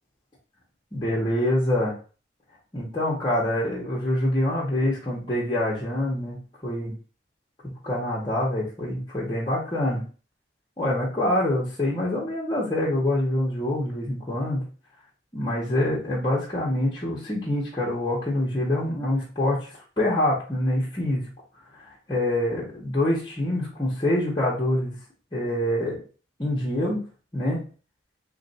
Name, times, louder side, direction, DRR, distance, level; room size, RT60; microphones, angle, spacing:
voice 1, 0.9-1.9 2.7-6.4 6.6-6.9 7.6-10.0 10.8-14.6 15.3-21.3 21.8-25.0 25.3-26.0 26.4-27.0 27.3-27.6, left 1 dB, 25° left, -6 dB, 0.8 m, -25 dB
3.2 x 2.5 x 3.9 m, 0.37 s
head